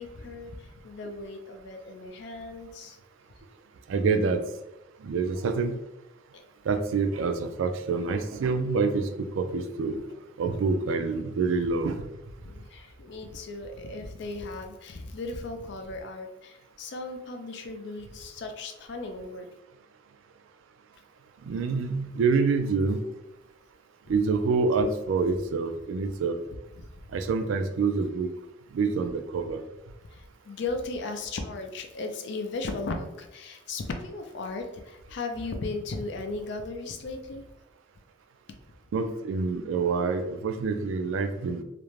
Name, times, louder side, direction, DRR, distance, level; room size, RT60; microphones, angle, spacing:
voice 1, 0.0-3.0 6.3-6.4 12.4-19.5 26.8-26.9 30.1-37.4, left 3 dB, 60° left, 5 dB, 0.4 m, -36 dB
voice 2, 3.9-4.4 5.0-5.7 6.7-10.0 10.4-12.0 21.5-23.0 24.1-26.4 27.1-28.3 28.7-29.6 38.9-41.6, right 4 dB, 80° right, 8 dB, 0.3 m, -26 dB
2.5 x 2.1 x 3.0 m, 0.90 s
head